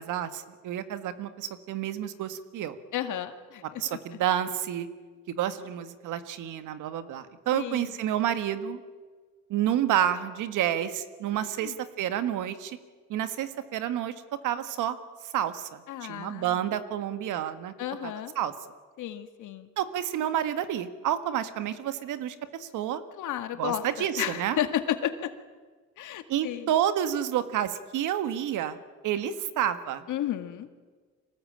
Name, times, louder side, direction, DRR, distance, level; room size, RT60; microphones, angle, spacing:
voice 1, 0.0-2.8 3.8-4.9 5.3-8.8 9.5-12.8 13.1-14.1 14.4-15.0 15.2-17.7 18.0-18.5 19.8-23.0 23.6-24.6 26.3-30.0, right 10 dB, 90° right, 11 dB, 1.7 m, -29 dB
voice 2, 2.9-4.2 7.5-7.9 11.6-11.8 15.9-16.6 17.8-18.3 19.0-19.7 23.2-25.3 26.0-26.7 30.1-30.7, left 11 dB, 80° left, 8 dB, 2.1 m, -33 dB
25.0 x 18.5 x 8.8 m, 1.4 s
cardioid pair, 90°, 30 cm